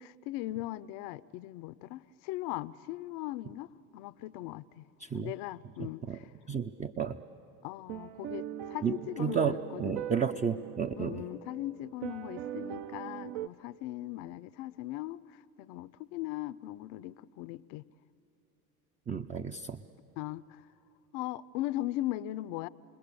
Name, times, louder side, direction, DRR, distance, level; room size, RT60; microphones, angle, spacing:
voice 1, 0.0-4.8 5.1-6.3 7.6-9.9 11.0-15.2 15.6-17.8 20.2-20.6 21.1-22.7, left 16 dB, 60° left, 18 dB, 0.6 m, -39 dB
voice 2, 5.0-5.3 5.8-6.2 6.5-7.2 8.8-11.2 19.1-19.8, right 6 dB, 20° right, 7 dB, 0.5 m, -32 dB
sound 1, 7.9-13.5, right 11 dB, 60° right, 0.8 m, -41 dB
29.5 x 21.0 x 6.9 m, 3.0 s
hypercardioid pair, 75°, 44 cm